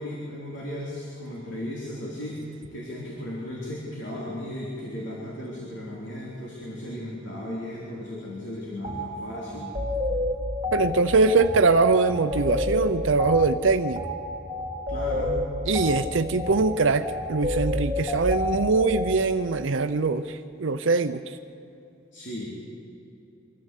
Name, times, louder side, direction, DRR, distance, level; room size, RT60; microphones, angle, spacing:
voice 1, 0.0-9.7 14.9-15.4 22.1-22.6, left 1 dB, 70° left, -4 dB, 3.4 m, -35 dB
sound 1, 8.8-9.0 9.5-19.2, left 2 dB, 25° right, 2.6 m, -29 dB
voice 2, 10.7-14.0 15.7-20.2 20.6-21.2, right 4 dB, 80° right, 8 dB, 0.7 m, -22 dB
24.5 x 14.0 x 8.3 m, 2.7 s
head